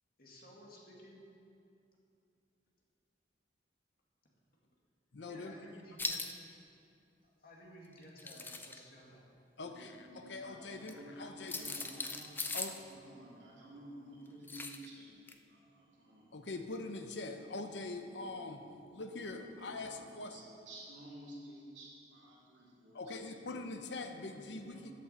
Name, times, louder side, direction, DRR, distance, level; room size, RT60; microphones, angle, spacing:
voice 1, 0.2-1.2 5.2-6.2 7.2-9.3 10.4-10.8 11.1-11.3 11.6-11.9, left 1 dB, 55° left, -2 dB, 2.0 m, -56 dB
voice 2, 5.1-5.6 9.6-11.7 12.5-12.8 16.3-18.6 18.9-20.3 22.9-24.9, left 3 dB, 75° left, 6 dB, 0.8 m, -43 dB
sound 1, 6.0-6.3 8.0-8.8 10.8-10.9 11.5-12.8 14.5-14.9 15.3-15.4, left 3 dB, 10° left, 0.4 m, -39 dB
voice 3, 9.6-12.3 12.6-15.2 15.5-16.5 18.1-18.6 18.9-23.4 24.0-24.9, right 1 dB, 80° right, -6 dB, 3.1 m, -53 dB
13.5 x 8.4 x 4.3 m, 2.6 s
head